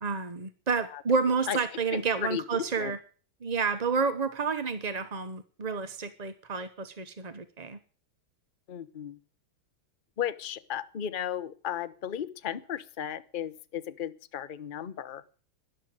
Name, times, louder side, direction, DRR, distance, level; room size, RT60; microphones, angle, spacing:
voice 1, 0.0-3.0 3.4-7.8, right 5 dB, 40° right, 11 dB, 0.5 m, -30 dB
voice 2, 1.9-2.9 8.7-9.2 10.2-15.2, left 10 dB, 55° left, 13 dB, 0.5 m, -35 dB
13.0 x 11.5 x 8.9 m, 0.41 s
omnidirectional pair, 2.2 m